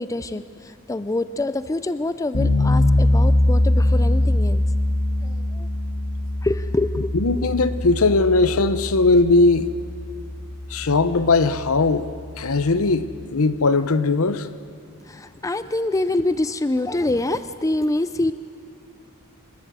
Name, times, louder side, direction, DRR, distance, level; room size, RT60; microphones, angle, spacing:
voice 1, 0.0-4.6 5.2-5.7 6.4-7.5 15.1-18.3, left 2 dB, 15° left, 13 dB, 0.4 m, -25 dB
sound 1, 2.3-13.2, left 1 dB, 45° left, 2.3 m, -22 dB
voice 2, 7.1-9.7 10.7-12.1 12.4-13.1 13.3-14.5, left 3 dB, 70° left, 13 dB, 0.9 m, -19 dB
28.0 x 12.5 x 8.1 m, 2.4 s
head